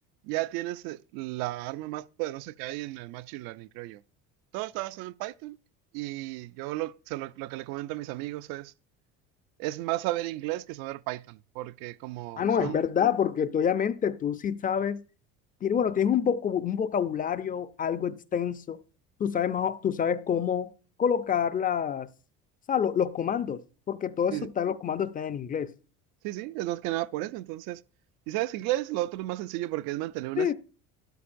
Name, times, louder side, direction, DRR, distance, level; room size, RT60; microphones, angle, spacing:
voice 1, 0.2-4.0 4.5-5.6 5.9-8.7 9.6-12.8 24.3-24.5 26.2-27.8 28.3-30.5, right 17 dB, 75° right, 0.5 m, -33 dB
voice 2, 12.4-15.0 15.6-18.8 19.2-20.7 21.0-22.1 22.7-25.7 30.4-30.5, left 8 dB, 25° left, 0.4 m, -27 dB
13.0 x 12.0 x 2.6 m
cardioid pair, 120°, 36 cm